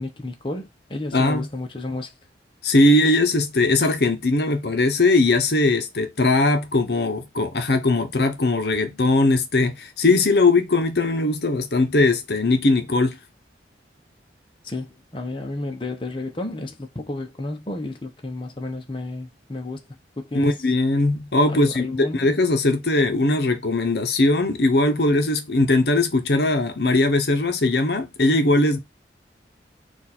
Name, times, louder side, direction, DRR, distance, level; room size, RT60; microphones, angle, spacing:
voice 1, 0.0-2.1 14.6-19.8 20.2-20.6 21.5-22.3, left 2 dB, 30° left, 0.8 m, -31 dB
voice 2, 1.1-1.5 2.6-13.2 20.3-28.8, left 2 dB, 60° left, 0.9 m, -20 dB
4.6 x 2.5 x 4.2 m
head